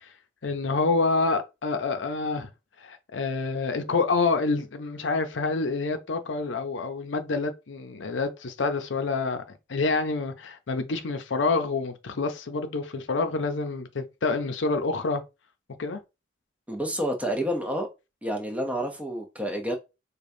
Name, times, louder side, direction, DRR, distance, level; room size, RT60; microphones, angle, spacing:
voice 1, 0.4-2.5 2.8-9.4 9.7-15.2 15.8-16.0, left 3 dB, 90° left, 0.6 m, -27 dB
voice 2, 16.7-17.9 18.2-19.8, equal, 10° right, 0.7 m, -29 dB
4.9 x 2.3 x 2.7 m
head